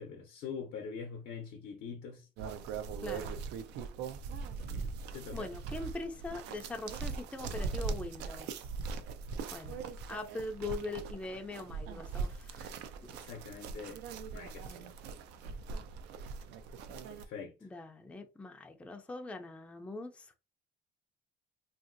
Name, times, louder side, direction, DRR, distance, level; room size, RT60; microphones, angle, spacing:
voice 1, 0.0-2.3 4.6-5.5 13.2-14.0 14.3-14.9 17.1-17.5, left 6 dB, 80° left, 0.6 m, -44 dB
sound 1, 2.4-17.3, right 5 dB, 85° right, 0.4 m, -41 dB
voice 2, 3.0-3.3 5.3-8.7 9.5-9.8 10.1-12.7 13.0-13.2 17.6-20.3, left 2 dB, 5° left, 0.4 m, -42 dB
2.9 x 2.6 x 2.5 m
cardioid pair, 110°, 17 cm